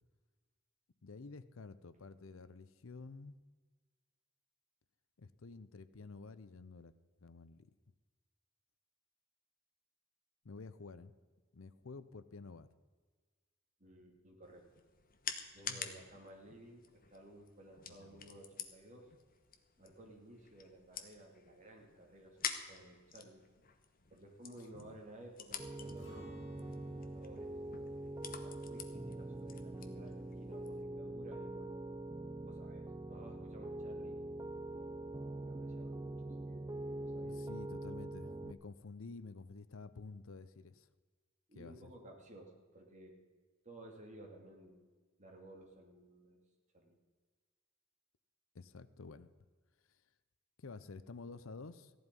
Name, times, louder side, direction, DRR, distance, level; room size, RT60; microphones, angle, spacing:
voice 1, 1.0-3.4 5.2-6.9 7.2-7.7 10.4-11.1 11.5-12.7 15.7-16.0 17.9-18.3 24.7-24.9 37.2-40.9 41.6-41.9 48.5-49.3 49.9-50.0 50.6-51.9, left 3 dB, 80° left, 15 dB, 0.7 m, -51 dB
voice 2, 13.8-14.8 15.5-19.1 19.8-23.4 24.1-27.5 28.2-31.7 32.4-34.2 34.7-36.7 37.0-37.5 41.5-43.1 43.6-44.9 45.2-46.4 46.7-47.0, right 1 dB, 35° right, 1 dB, 2.7 m, -56 dB
sound 1, 14.4-30.8, left 8 dB, 45° left, 1.1 m, -49 dB
Piano, 25.6-38.5, right 2 dB, 15° right, 0.4 m, -44 dB
Acoustic guitar, 26.0-31.9 32.2-32.4 32.8-33.3, left 1 dB, 60° left, 5.3 m, -64 dB
15.0 x 11.0 x 5.4 m, 1.4 s
head